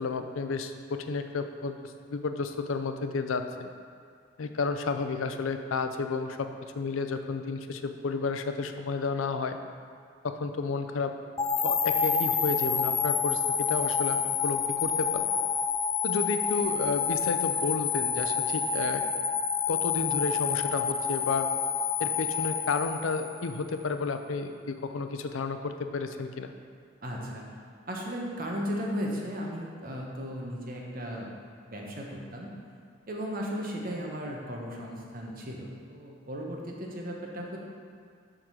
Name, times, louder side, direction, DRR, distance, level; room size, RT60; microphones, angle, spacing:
voice 1, 0.0-1.7 2.1-3.7 4.4-6.5 6.7-9.6 10.2-11.1 11.6-15.3 16.0-19.0 19.7-21.5 22.0-26.5, left 4 dB, 85° left, 7 dB, 0.5 m, -31 dB
sound 1, 11.4-23.6, left 6 dB, 20° left, 0.3 m, -28 dB
voice 2, 27.0-27.4 27.9-31.3 31.7-32.5 33.1-37.6, equal, 45° right, -1 dB, 1.0 m, -36 dB
7.4 x 3.8 x 6.2 m, 2.2 s
head